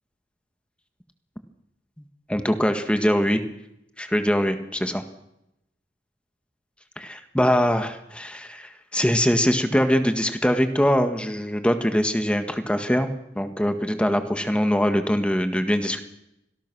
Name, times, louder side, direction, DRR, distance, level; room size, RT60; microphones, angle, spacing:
voice 1, 2.3-3.4 4.0-5.0 7.0-16.0, equal, 5° left, 7 dB, 1.7 m, -23 dB
25.5 x 18.0 x 6.3 m, 0.82 s
head